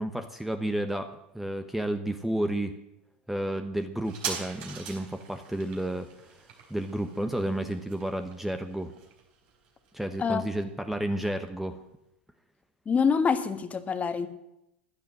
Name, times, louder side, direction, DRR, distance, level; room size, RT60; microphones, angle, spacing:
voice 1, 0.0-2.7 3.3-6.1 6.7-8.9 9.9-11.8, right 1 dB, 5° right, 7 dB, 1.2 m, -31 dB
sound 1, 4.0-11.1 11.4-11.5, right 6 dB, 55° right, 4.1 m, -42 dB
voice 2, 12.8-14.3, left 6 dB, 25° left, 9 dB, 1.6 m, -25 dB
15.0 x 10.5 x 7.6 m, 0.84 s
figure-of-eight pair, 85°, 6 cm